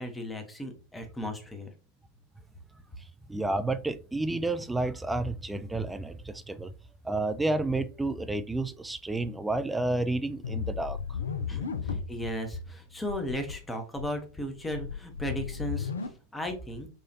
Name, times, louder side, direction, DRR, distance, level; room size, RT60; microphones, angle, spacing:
voice 1, 0.0-1.7 11.5-16.9, equal, 10° left, 0.7 m, -36 dB
voice 2, 3.3-6.7 7.0-11.0, right 2 dB, 5° right, 0.3 m, -30 dB
sound 1, 10.4-12.3 12.6-12.7 13.0-13.5 13.9-16.1, left 6 dB, 70° left, 0.4 m, -35 dB
4.7 x 2.4 x 2.7 m
figure-of-eight pair, 90°, 0 cm